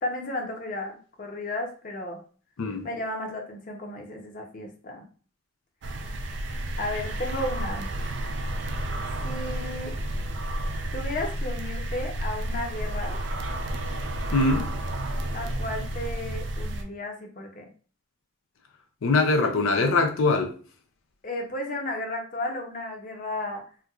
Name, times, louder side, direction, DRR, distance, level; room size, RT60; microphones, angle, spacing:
voice 1, 0.0-2.2 2.8-5.1 6.8-7.9 9.2-10.0 10.9-13.2 15.3-17.7 21.2-23.6, left 1 dB, 40° left, 0.7 m, -33 dB
sound 1, 5.8-16.8, right 1 dB, 60° right, 0.4 m, -31 dB
voice 2, 14.3-14.7 19.0-20.5, left 3 dB, 85° left, 0.5 m, -22 dB
4.3 x 2.2 x 2.4 m
head